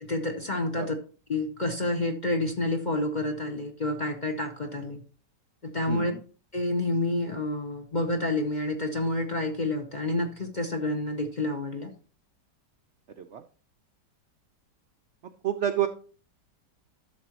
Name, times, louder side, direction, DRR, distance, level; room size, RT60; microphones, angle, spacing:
voice 1, 0.0-0.9 1.3-5.0 5.6-6.1 6.5-11.9, left 2 dB, 35° left, 4 dB, 0.8 m, -29 dB
voice 2, 5.9-6.2 13.2-13.4 15.4-15.9, right 11 dB, 65° right, 7 dB, 0.7 m, -28 dB
12.0 x 6.7 x 2.9 m, 0.39 s
omnidirectional pair, 1.9 m